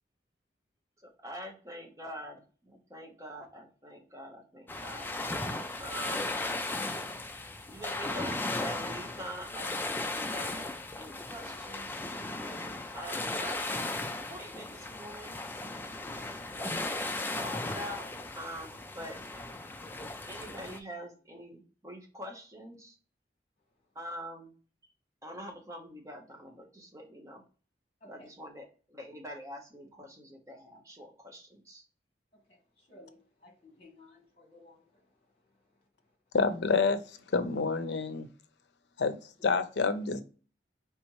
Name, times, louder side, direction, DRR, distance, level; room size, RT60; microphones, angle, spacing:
voice 1, 1.0-5.1 5.8-6.3 7.7-12.0 12.4-15.4 16.5-18.1 18.3-19.2 20.0-23.0 23.9-24.5 25.2-27.4 28.0-31.8, equal, 15° right, 0.9 m, -45 dB
sound 1, 4.7-20.8, left 2 dB, 10° left, 0.3 m, -36 dB
voice 2, 32.5-35.1 39.4-39.5, left 1 dB, 35° left, 1.5 m, -57 dB
voice 3, 36.3-37.0 37.3-38.3 39.0-39.2 39.4-40.2, left 4 dB, 85° left, 0.5 m, -27 dB
4.2 x 3.5 x 2.9 m
head